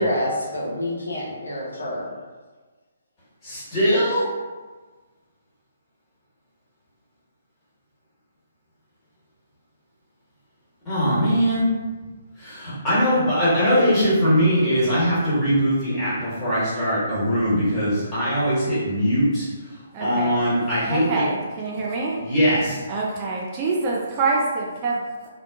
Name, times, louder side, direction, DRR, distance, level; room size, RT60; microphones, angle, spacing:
voice 1, 0.0-2.2, equal, 70° left, -4 dB, 0.7 m, -27 dB
voice 2, 3.4-4.3 10.8-11.7 12.4-19.7 20.0-21.2 22.2-22.8, equal, 20° left, -11 dB, 1.3 m, -21 dB
voice 3, 19.9-20.4 20.9-22.2 22.9-25.3, right 3 dB, 25° right, -3 dB, 0.3 m, -26 dB
2.8 x 2.1 x 2.5 m, 1.3 s
figure-of-eight pair, 130°, 0 cm